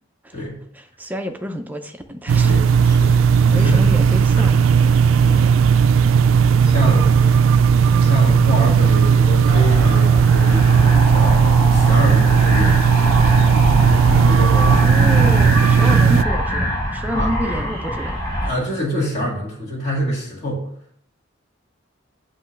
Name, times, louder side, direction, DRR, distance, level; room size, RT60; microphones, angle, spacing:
voice 1, 0.7-2.6 3.0-5.0 6.8-7.3 7.9-8.1 14.5-18.2, equal, 10° right, 6 dB, 0.5 m, -29 dB
sound 1, 2.3-16.2, right 6 dB, 75° right, 0.3 m, -15 dB
voice 2, 2.4-3.1 3.5-3.9 4.3-4.6 5.2-5.5 6.6-7.0 8.0-13.0 13.7-14.7 17.1-17.6 18.4-20.7, equal, 35° left, -6 dB, 2.0 m, -26 dB
sound 2, 9.5-18.5, equal, 20° left, 3.2 m, -23 dB
8.0 x 3.0 x 5.7 m, 0.65 s
head